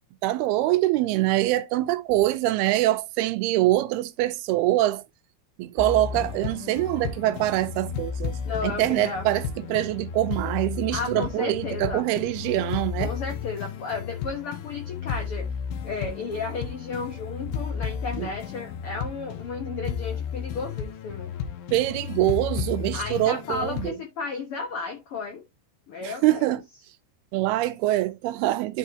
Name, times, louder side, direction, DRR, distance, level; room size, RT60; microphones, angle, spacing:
voice 1, 0.2-5.0 5.6-8.3 8.6-13.1 18.2-18.3 21.7-24.0 26.0-26.6 27.3-28.8, right 15 dB, 85° right, 2.7 m, -24 dB
sound 1, 5.8-23.9, left 7 dB, 70° left, 2.2 m, -33 dB
voice 2, 8.4-9.2 10.9-12.0 13.0-15.5 15.8-21.3 22.9-25.4 25.9-26.5, left 4 dB, 90° left, 1.2 m, -33 dB
11.5 x 4.6 x 2.8 m
omnidirectional pair, 4.5 m